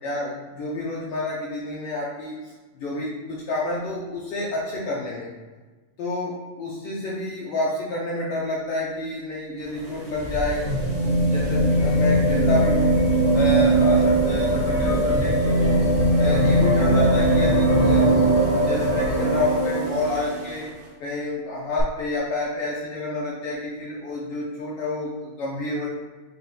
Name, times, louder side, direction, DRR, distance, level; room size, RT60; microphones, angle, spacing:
voice 1, 0.0-5.3 6.0-12.9 13.3-15.8 16.2-18.3 18.5-20.7 21.0-25.9, left 2 dB, 80° left, -5 dB, 1.3 m, -29 dB
sound 1, 9.6-20.6 21.8-21.9, right 1 dB, 50° right, 1.1 m, -20 dB
5.6 x 4.0 x 2.2 m, 1.3 s
omnidirectional pair, 3.5 m